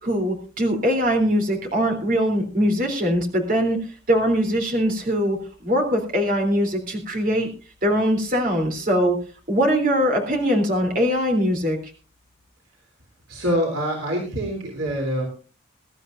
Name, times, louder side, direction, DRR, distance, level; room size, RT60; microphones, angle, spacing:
voice 1, 0.0-3.8 4.1-5.4 5.6-7.5 7.8-9.2 9.5-11.8, equal, 45° right, 3 dB, 3.5 m, -21 dB
voice 2, 13.3-15.2, equal, 85° right, -1 dB, 3.5 m, -25 dB
22.5 x 12.5 x 2.6 m, 0.36 s
head